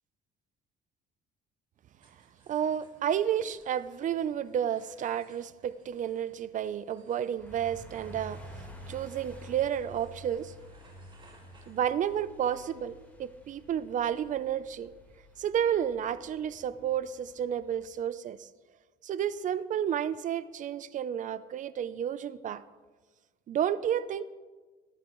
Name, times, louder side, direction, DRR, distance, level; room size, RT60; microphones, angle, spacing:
sound 1, 2.0-12.5, right 3 dB, 30° right, 4.6 m, -64 dB
voice 1, 2.5-8.4 8.9-10.5 11.7-14.9 15.4-18.5 19.0-22.6 23.5-24.2, right 9 dB, 50° right, 16 dB, 0.5 m, -31 dB
sound 2, 7.4-17.9, equal, 10° left, 3.9 m, -50 dB
19.5 x 13.0 x 3.1 m, 1.3 s
cardioid pair, 110°, 17 cm